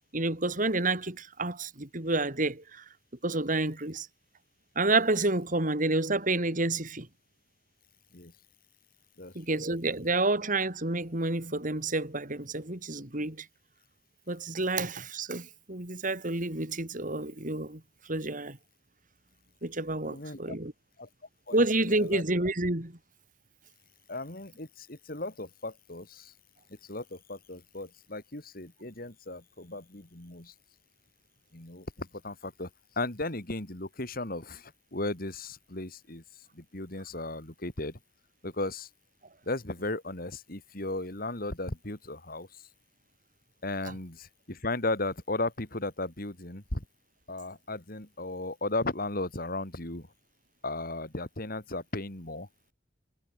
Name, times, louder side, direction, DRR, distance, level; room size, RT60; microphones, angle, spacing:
voice 1, 0.1-2.8 3.2-4.1 4.8-7.1 9.4-13.5 14.3-17.8 18.1-18.6 19.6-20.7 21.5-23.0, right 2 dB, 45° right, 3.8 m, -29 dB
voice 2, 9.2-9.6 20.0-20.6 21.0-21.1 21.5-22.2 24.1-26.3 26.7-30.5 31.5-32.7 33.0-38.0 38.4-38.9 39.4-42.6 43.6-46.8 47.3-50.1 50.6-52.5, left 2 dB, 55° left, 3.7 m, -36 dB
head